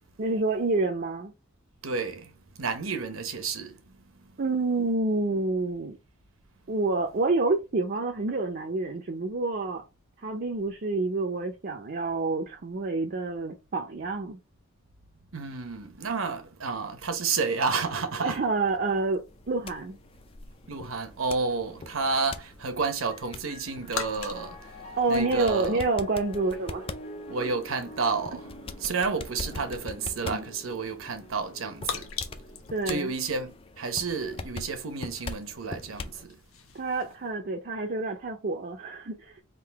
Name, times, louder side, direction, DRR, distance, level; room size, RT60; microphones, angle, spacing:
voice 1, 0.2-1.3 4.4-6.0 6.7-9.8 10.2-14.4 18.2-20.0 25.0-26.9 30.2-30.5 32.7-33.1 36.7-39.4, right 3 dB, 45° right, 0.6 m, -28 dB
voice 2, 1.8-4.4 15.3-18.4 20.7-24.7 25.1-25.8 27.3-28.5 28.8-32.1 32.9-36.4, right 4 dB, 75° right, 0.9 m, -31 dB
sound 1, 18.8-37.2, left 6 dB, 80° left, 0.8 m, -45 dB
sound 2, 19.3-36.2, left 3 dB, 25° left, 0.4 m, -43 dB
Piano, 23.0-32.6, left 1 dB, 45° left, 1.4 m, -46 dB
3.7 x 2.6 x 4.6 m
head